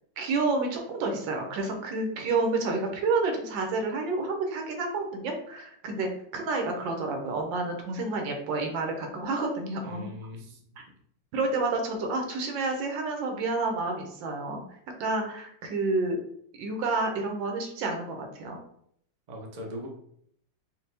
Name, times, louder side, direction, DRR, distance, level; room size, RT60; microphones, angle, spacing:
voice 1, 0.2-10.1 10.8-10.9 11.3-16.2 16.5-18.6, right 3 dB, 85° right, 3 dB, 1.5 m, -29 dB
voice 2, 9.8-10.6 19.3-19.9, equal, 45° right, 0 dB, 0.5 m, -40 dB
5.6 x 2.2 x 3.3 m, 0.68 s
omnidirectional pair, 2.0 m